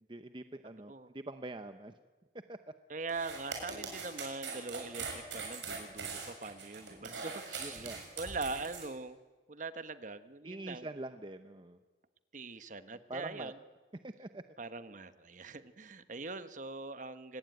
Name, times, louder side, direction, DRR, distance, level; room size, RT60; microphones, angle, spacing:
voice 1, 0.1-2.0 2.5-2.6 7.0-7.2 7.6-8.0 10.4-11.8 12.9-13.5 14.0-14.4, right 2 dB, 25° right, 9 dB, 0.7 m, -45 dB
voice 2, 0.6-1.1 2.9-9.2 9.5-10.9 12.3-13.6 14.6-17.4, right 3 dB, 45° right, 12 dB, 1.1 m, -42 dB
sound 1, 3.1-8.9, right 5 dB, 80° right, 6.9 m, -42 dB
25.0 x 19.5 x 9.4 m, 1.3 s
head